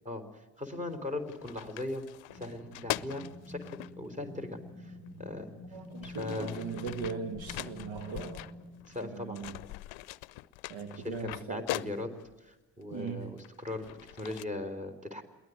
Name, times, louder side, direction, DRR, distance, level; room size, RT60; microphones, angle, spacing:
voice 1, 0.0-2.0 2.3-4.9 5.2-5.5 6.0-6.5 8.9-9.4 11.0-12.1 12.4-15.2, left 2 dB, 15° right, 6 dB, 3.7 m, -39 dB
sound 1, 0.7-0.9 1.3-3.9 5.1-5.2 5.7-9.1 9.3-12.3 13.0-14.4, left 19 dB, 65° left, 0.7 m, -41 dB
sound 2, 2.3-9.0, left 1 dB, 85° right, 4.9 m, -48 dB
voice 2, 5.7-8.5 9.0-9.6 10.7-11.8 12.9-13.4, right 5 dB, 65° right, 9 dB, 1.7 m, -39 dB
22.0 x 18.0 x 9.4 m, 1.1 s
hypercardioid pair, 40°, 49 cm